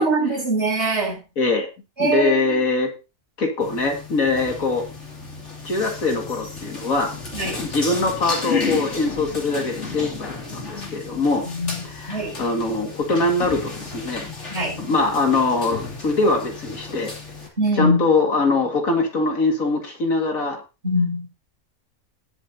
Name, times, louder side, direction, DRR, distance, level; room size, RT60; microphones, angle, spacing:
voice 1, 0.0-1.2 2.0-2.6 7.3-7.7 11.5-12.4 14.5-14.8 17.6-18.0 20.8-21.2, right 1 dB, 50° right, 7.0 m, -23 dB
voice 2, 1.4-1.7 2.0-2.9 3.4-4.9 5.6-7.1 7.6-11.5 11.8-14.3 14.8-17.1 17.8-20.6, left 3 dB, 75° left, 2.5 m, -22 dB
sound 1, 3.6-17.5, left 4 dB, 55° left, 3.0 m, -33 dB
20.0 x 7.3 x 2.8 m
omnidirectional pair, 1.5 m